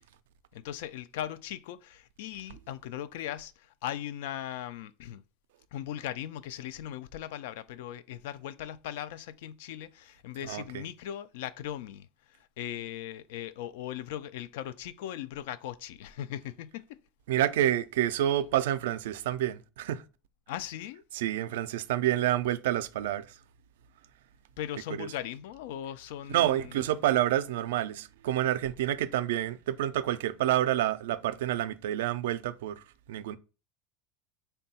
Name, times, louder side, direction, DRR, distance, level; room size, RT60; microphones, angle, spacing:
voice 1, 0.5-5.2 5.7-17.0 20.5-21.0 24.6-26.9, left 11 dB, 75° left, 0.3 m, -39 dB
voice 2, 10.5-10.8 17.3-20.0 21.1-23.3 25.0-25.1 26.3-33.4, right 12 dB, 90° right, 0.3 m, -28 dB
3.7 x 2.2 x 4.1 m
supercardioid pair, 155°, 0 cm